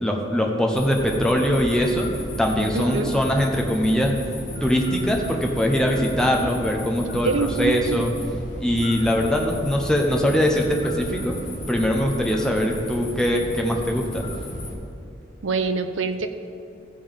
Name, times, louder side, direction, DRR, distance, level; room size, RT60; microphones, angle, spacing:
voice 1, 0.0-2.1 2.4-7.3 7.6-8.1 8.6-11.4 11.7-14.2, equal, 5° left, 0 dB, 0.8 m, -22 dB
sound 1, 0.7-14.7, left 1 dB, 40° left, 1.5 m, -34 dB
voice 2, 2.7-3.1 7.2-8.0 15.4-16.3, right 4 dB, 85° right, 9 dB, 0.7 m, -25 dB
14.0 x 5.4 x 5.3 m, 2.6 s
head